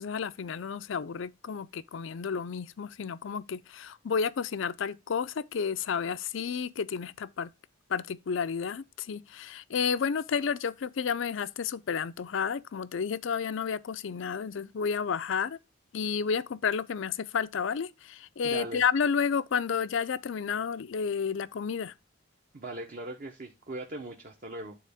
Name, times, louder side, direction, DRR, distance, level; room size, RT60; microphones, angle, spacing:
voice 1, 0.0-7.5 7.9-15.6 15.9-21.9, left 6 dB, 65° left, 0.4 m, -31 dB
voice 2, 18.4-18.8 22.5-24.8, right 2 dB, 45° right, 0.9 m, -39 dB
9.2 x 4.0 x 3.4 m
head